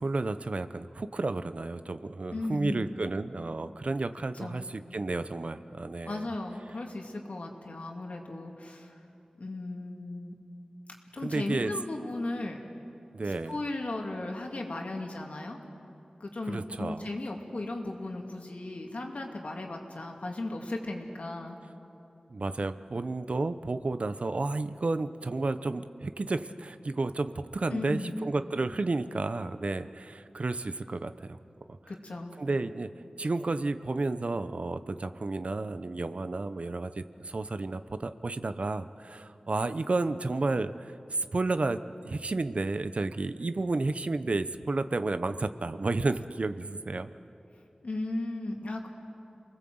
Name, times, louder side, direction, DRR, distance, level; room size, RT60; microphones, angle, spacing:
voice 1, 0.0-6.3 11.2-11.7 13.1-13.6 16.5-17.1 22.3-31.4 31.7-31.8 32.4-32.9 33.2-47.1, right 3 dB, 60° right, 11 dB, 0.8 m, -32 dB
voice 2, 2.3-2.9 4.3-4.6 6.1-8.9 9.4-10.3 11.1-12.6 13.5-15.6 16.2-21.6 27.7-28.2 31.9-32.4 47.8-48.9, left 2 dB, 70° left, 1 dB, 2.8 m, -36 dB
28.0 x 20.0 x 7.9 m, 2.8 s
wide cardioid pair, 60°, 2 cm